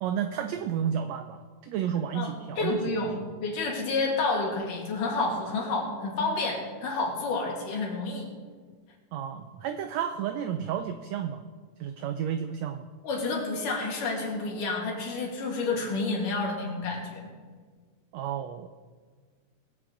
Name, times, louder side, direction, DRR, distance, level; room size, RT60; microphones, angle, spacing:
voice 1, 0.0-3.2 9.1-11.4 11.8-12.9 18.1-18.7, right 9 dB, 90° right, 8 dB, 1.5 m, -32 dB
voice 2, 2.6-8.3 13.0-17.2, left 3 dB, 85° left, -1 dB, 3.8 m, -29 dB
21.0 x 7.9 x 3.9 m, 1.6 s
omnidirectional pair, 3.6 m